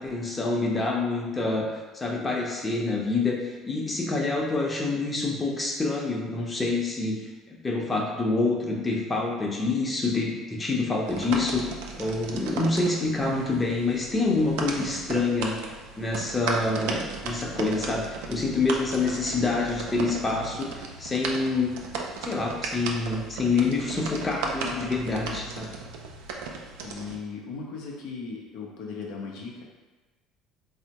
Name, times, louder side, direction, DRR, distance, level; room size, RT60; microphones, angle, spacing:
voice 1, 0.0-1.7 1.9-7.2 7.5-11.6 12.0-15.6 16.0-21.7 22.2-25.7, left 3 dB, 25° left, -1 dB, 0.7 m, -27 dB
sound 1, 11.1-27.2, right 4 dB, 80° right, 0.3 m, -36 dB
voice 2, 24.6-24.9 26.8-29.6, left 4 dB, 70° left, -1 dB, 0.6 m, -37 dB
3.4 x 2.1 x 2.8 m, 1.2 s
hypercardioid pair, 75°, 0 cm